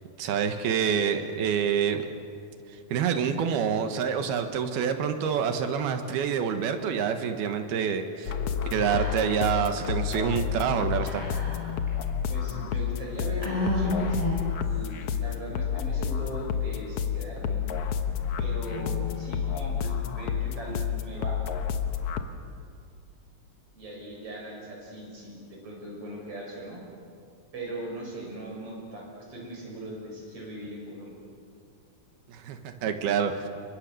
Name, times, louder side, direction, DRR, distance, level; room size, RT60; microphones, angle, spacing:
voice 1, 0.2-2.0 2.9-8.3 8.7-11.2 32.3-33.5, right 7 dB, 80° right, 7 dB, 3.4 m, -27 dB
sound 1, 8.2-22.2, left 8 dB, 90° left, 1.3 m, -30 dB
Whispering, 8.8-9.5 9.8-9.9 11.0-11.9 12.5-12.6 13.4-14.6, equal, 10° left, 5.9 m, -31 dB
voice 2, 12.3-14.2 14.6-17.6 18.4-21.4 23.7-26.8 27.5-31.1, right 1 dB, 35° right, -2 dB, 7.0 m, -39 dB
29.5 x 24.0 x 6.8 m, 2.4 s
omnidirectional pair, 4.5 m